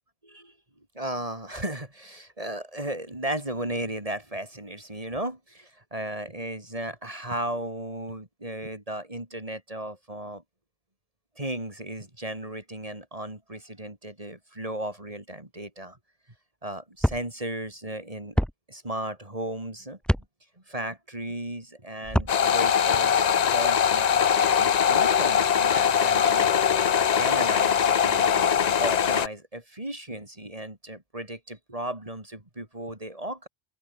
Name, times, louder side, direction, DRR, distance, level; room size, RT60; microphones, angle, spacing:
voice 1, 0.2-0.5 0.9-10.4 11.4-16.0 16.6-20.0 20.7-26.5 27.1-33.5, right 1 dB, 30° right, 3.8 m, -35 dB
sound 1, 17.0-17.2 18.4-18.5 20.0-20.3 22.0-22.3, equal, ahead, 1.8 m, -24 dB
sound 2, 22.3-29.3, left 8 dB, 45° left, 0.5 m, -22 dB
open air
omnidirectional pair, 1.3 m